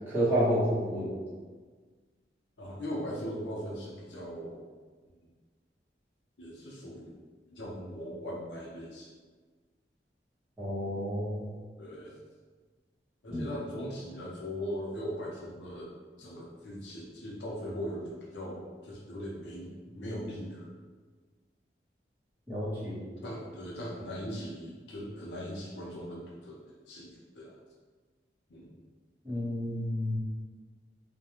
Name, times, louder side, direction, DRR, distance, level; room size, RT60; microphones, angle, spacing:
voice 1, 0.1-1.1 10.6-11.4 13.3-13.5 22.5-23.0 29.2-30.2, equal, 10° right, -12 dB, 1.0 m, -30 dB
voice 2, 2.6-4.6 6.4-7.2 7.5-9.1 11.8-12.2 13.2-15.9 16.2-20.7 23.2-26.6 26.9-27.6 28.5-28.7, equal, 80° left, -4 dB, 0.6 m, -39 dB
2.3 x 2.2 x 2.9 m, 1.4 s
head